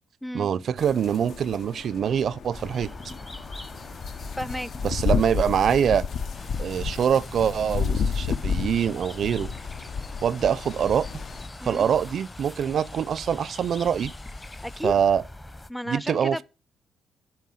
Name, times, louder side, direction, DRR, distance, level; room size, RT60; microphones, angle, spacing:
voice 1, 0.3-2.9 4.8-6.1 6.6-9.5 10.2-11.1 11.6-14.1 14.8-15.2 15.9-16.4, right 8 dB, 60° right, 0.5 m, -24 dB
sound 1, 0.8-11.5, left 6 dB, 60° left, 0.7 m, -31 dB
sound 2, 2.5-15.7, left 1 dB, 15° left, 0.9 m, -43 dB
voice 2, 4.4-4.7 11.6-11.9 14.6-15.0 15.7-16.4, equal, ahead, 0.5 m, -32 dB
sound 3, 6.3-14.8, left 3 dB, 35° left, 1.2 m, -46 dB
12.5 x 4.5 x 7.7 m
cardioid pair, 90°, 0 cm